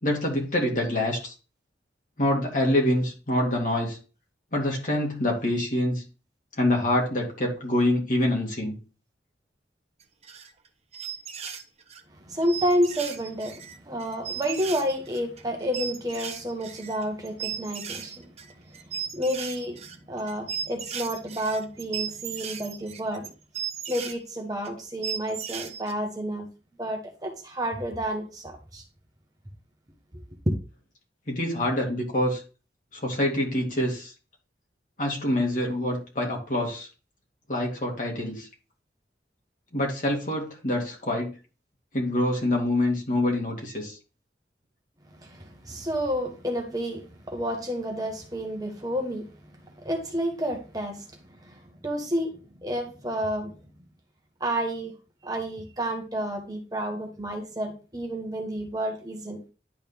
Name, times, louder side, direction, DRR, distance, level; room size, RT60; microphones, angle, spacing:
voice 1, 0.0-1.3 2.2-4.0 4.5-6.0 6.6-8.8 31.3-32.4 32.9-34.1 35.0-36.9 37.5-38.5 39.7-41.3 41.9-44.0, left 1 dB, 45° left, 2.5 m, -26 dB
sound 1, 10.0-10.7 10.9-12.0 12.4-24.1 24.6-24.7 25.0-25.9, right 8 dB, 35° right, 0.9 m, -36 dB
voice 2, 12.3-18.2 19.1-23.3 23.9-26.5 26.8-28.8 30.1-30.2 45.2-49.3 49.8-51.1 51.4-52.3 52.6-53.6 54.4-54.9 55.2-59.4, equal, 20° right, 1.3 m, -30 dB
11.0 x 4.1 x 3.5 m
head